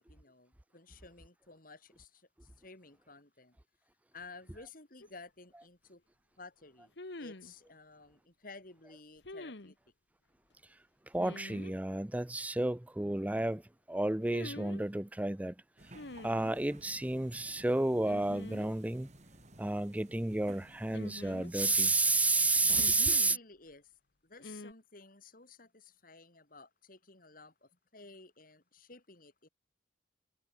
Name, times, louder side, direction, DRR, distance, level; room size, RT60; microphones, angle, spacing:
voice 1, 0.0-3.6 4.1-6.0 6.4-9.8 23.1-23.9 24.2-29.5, left 3 dB, 50° left, 4.2 m, -54 dB
sound 1, 5.0-5.1 7.0-7.5 9.2-9.7 11.2-11.7 14.2-14.8 15.9-16.6 18.0-18.7 19.0-19.1 20.9-21.9 22.8-23.4 24.4-24.7, left 2 dB, 70° left, 1.7 m, -46 dB
voice 2, 11.1-13.6 13.9-15.5 16.2-19.1 19.6-23.4, right 2 dB, 10° right, 0.5 m, -31 dB
sound 2, 15.8-23.2, right 1 dB, 40° right, 3.7 m, -54 dB
head